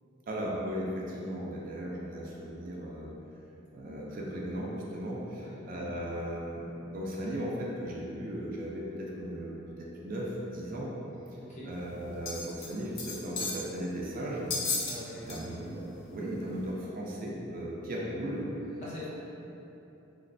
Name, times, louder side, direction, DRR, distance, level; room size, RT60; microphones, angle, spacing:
voice 1, 0.3-3.1 3.7-10.9 11.7-14.5 15.3-15.8 16.1-18.5, equal, 45° right, -4 dB, 0.4 m, -36 dB
voice 2, 11.4-11.7 14.9-15.6 18.8-19.1, left 1 dB, 35° left, -9 dB, 0.8 m, -43 dB
sound 1, 12.2-12.7 13.0-13.6 14.5-15.0 15.3-15.4 16.0-16.1, left 3 dB, 55° left, 0.4 m, -33 dB
3.0 x 2.5 x 2.5 m, 3.0 s
head